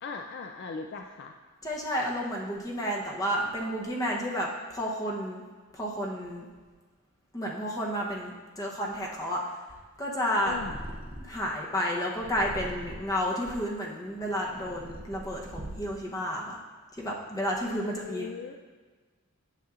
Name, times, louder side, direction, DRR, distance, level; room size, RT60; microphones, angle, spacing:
voice 1, 0.0-1.3 10.4-10.8 17.6-18.5, left 4 dB, 50° left, 4 dB, 0.3 m, -38 dB
voice 2, 1.6-5.4 5.7-6.5 7.3-9.4 10.0-10.6 11.2-16.6 16.9-18.3, equal, 15° left, -2 dB, 0.7 m, -31 dB
Purr, 10.4-11.5 12.2-13.3 14.0-16.1, right 1 dB, 25° right, 0.6 m, -42 dB
8.9 x 7.0 x 2.4 m, 1.4 s
head